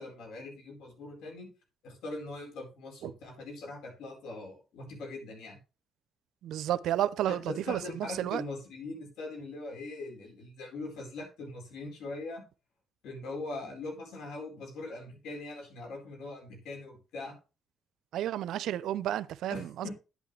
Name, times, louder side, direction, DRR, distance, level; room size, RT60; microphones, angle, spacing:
voice 1, 0.0-1.5 1.8-5.6 7.3-12.4 13.0-17.4 19.5-19.9, left 2 dB, 85° left, 4.4 m, -41 dB
voice 2, 6.4-8.4 18.1-19.9, right 12 dB, 85° right, 0.6 m, -32 dB
11.0 x 8.4 x 3.3 m
cardioid pair, 80°, 0 cm